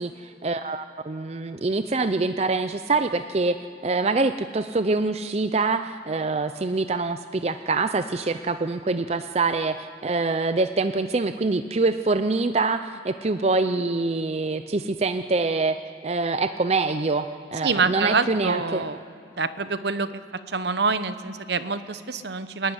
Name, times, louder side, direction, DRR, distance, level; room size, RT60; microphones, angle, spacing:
voice 1, 0.0-3.6 3.8-15.8 16.0-17.3 17.5-18.8, right 3 dB, 35° right, 10 dB, 0.5 m, -25 dB
voice 2, 17.6-19.0 19.4-20.2 20.5-22.7, right 4 dB, 65° right, 12 dB, 0.9 m, -26 dB
27.0 x 12.0 x 10.0 m, 2.6 s
head